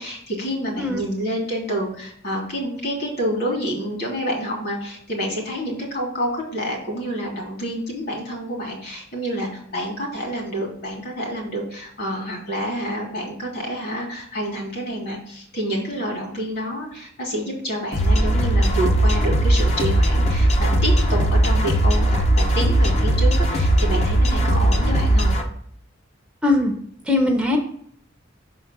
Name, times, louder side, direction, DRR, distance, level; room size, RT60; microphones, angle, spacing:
voice 1, 0.0-25.3, equal, 55° left, 0 dB, 2.4 m, -28 dB
sound 1, 17.9-25.4, right 1 dB, 35° left, 0.8 m, -18 dB
voice 2, 26.4-26.7 27.1-27.6, left 2 dB, 5° right, 2 dB, 0.7 m, -20 dB
6.1 x 3.8 x 5.9 m, 0.67 s
head